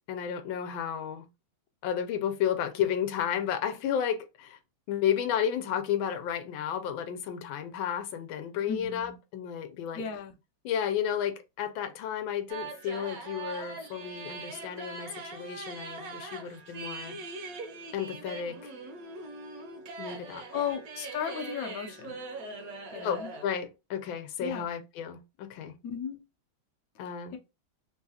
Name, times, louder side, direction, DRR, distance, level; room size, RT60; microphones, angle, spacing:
voice 1, 0.1-1.3 1.8-4.6 4.9-10.0 10.6-17.2 17.9-18.7 20.0-20.4 23.0-25.8 27.0-27.4, left 9 dB, 80° left, 1.4 m, -32 dB
voice 2, 8.6-9.2 9.9-10.3 20.5-22.2 22.9-23.3 24.4-24.7 25.8-26.2 27.3-27.4, left 7 dB, 65° left, 0.9 m, -35 dB
sound 1, 12.5-23.4, right 3 dB, 60° right, 1.1 m, -41 dB
3.7 x 2.3 x 2.7 m
omnidirectional pair, 2.2 m